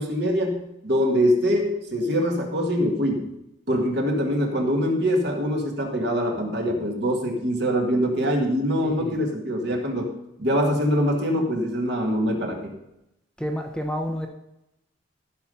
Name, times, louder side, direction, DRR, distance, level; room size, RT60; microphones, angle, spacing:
voice 1, 0.0-3.3 3.7-10.1 10.4-12.7, equal, 55° right, 2 dB, 2.0 m, -24 dB
voice 2, 8.8-9.2 13.4-14.3, equal, 5° left, 4 dB, 0.7 m, -29 dB
15.0 x 5.5 x 5.5 m, 0.85 s
head